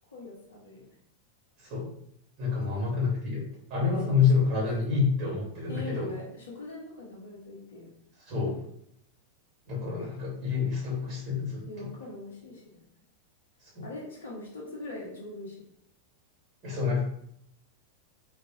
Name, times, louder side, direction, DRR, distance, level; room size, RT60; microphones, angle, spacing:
voice 1, 0.1-0.8 2.6-2.8 3.9-4.2 5.7-7.9 9.9-10.1 11.6-12.8 13.8-15.6, left 2 dB, 65° left, -2 dB, 0.9 m, -42 dB
voice 2, 1.6-1.9 2.4-3.4 3.7-6.1 8.3-8.6 9.7-11.9 13.7-13.9 16.6-17.0, left 5 dB, 35° right, -4 dB, 1.2 m, -28 dB
2.4 x 2.2 x 2.8 m, 0.71 s
figure-of-eight pair, 90°, 0 cm